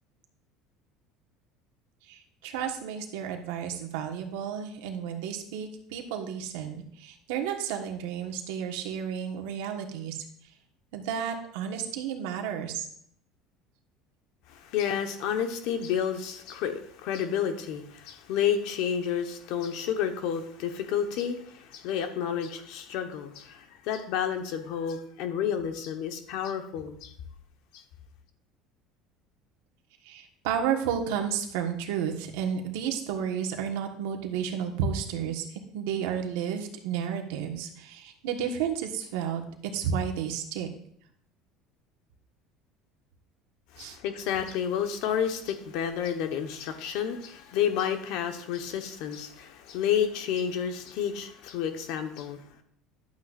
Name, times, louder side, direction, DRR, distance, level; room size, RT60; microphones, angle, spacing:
voice 1, 2.1-10.2 10.9-12.9 30.0-40.7 43.8-44.0, right 8 dB, 85° right, 1.4 m, -32 dB
voice 2, 14.5-27.1 27.7-27.8 43.7-52.4, left 8 dB, 70° left, 1.2 m, -30 dB
11.5 x 8.5 x 2.5 m
cardioid pair, 140°, 0 cm